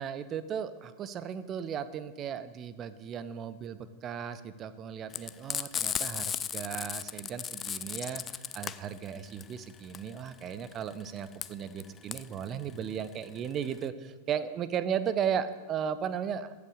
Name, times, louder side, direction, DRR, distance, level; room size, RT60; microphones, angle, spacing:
voice 1, 0.0-16.5, right 8 dB, 30° right, 14 dB, 0.8 m, -36 dB
Frying (food), 5.1-13.9, left 8 dB, 25° left, 0.4 m, -36 dB
14.5 x 8.4 x 6.5 m, 1.2 s
figure-of-eight pair, 90°, 0 cm